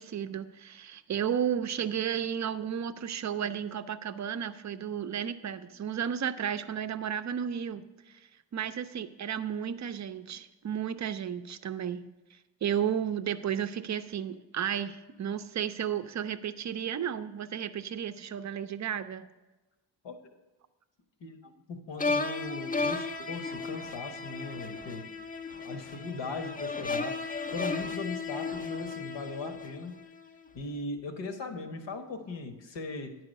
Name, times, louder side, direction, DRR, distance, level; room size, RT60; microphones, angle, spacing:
voice 1, 0.0-7.8 8.5-12.1 12.6-19.3, right 8 dB, 40° right, 11 dB, 0.5 m, -33 dB
voice 2, 21.2-25.1 25.6-29.9 30.5-33.2, left 3 dB, 70° left, 7 dB, 1.2 m, -39 dB
sound 1, 22.0-30.2, left 4 dB, 20° left, 0.5 m, -34 dB
9.8 x 4.8 x 6.5 m, 1.1 s
cardioid pair, 105°, 46 cm